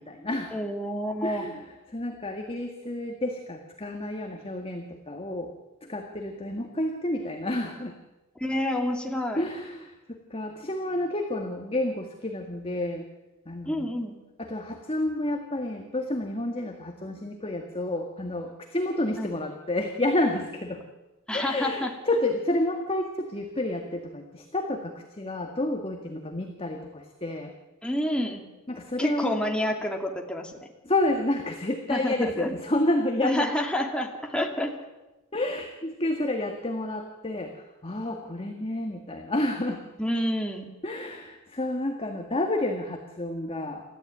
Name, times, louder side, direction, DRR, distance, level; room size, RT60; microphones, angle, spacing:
voice 1, 0.0-0.6 1.2-1.6 1.9-5.5 5.8-8.0 9.4-13.1 13.5-14.0 14.4-20.8 21.3-27.5 28.7-29.3 30.8-33.5 35.3-37.5 37.8-39.8 40.8-43.8, left 1 dB, 25° left, 3 dB, 1.9 m, -30 dB
voice 2, 0.5-1.5 8.4-9.4 13.7-14.1 19.2-19.3 21.3-21.9 27.8-28.5 29.0-30.6 31.9-32.5 33.2-34.7 40.0-40.7, left 1 dB, 5° left, 2 dB, 2.6 m, -28 dB
29.0 x 14.5 x 9.0 m, 1.0 s
head